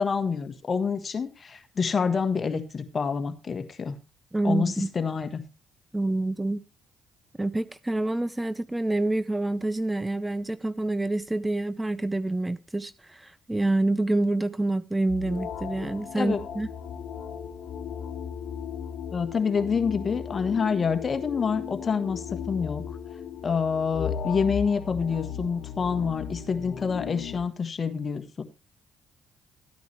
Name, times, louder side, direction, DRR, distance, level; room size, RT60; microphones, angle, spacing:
voice 1, 0.0-3.9 4.4-5.4 16.1-16.4 19.1-22.8 23.4-28.4, left 5 dB, 45° left, 1.5 m, -27 dB
voice 2, 4.3-4.9 5.9-6.6 7.4-16.7, right 2 dB, 15° right, 0.5 m, -27 dB
sound 1, 15.1-27.4, left 7 dB, 65° left, 1.3 m, -36 dB
12.5 x 9.2 x 3.3 m
supercardioid pair, 60°, 0 cm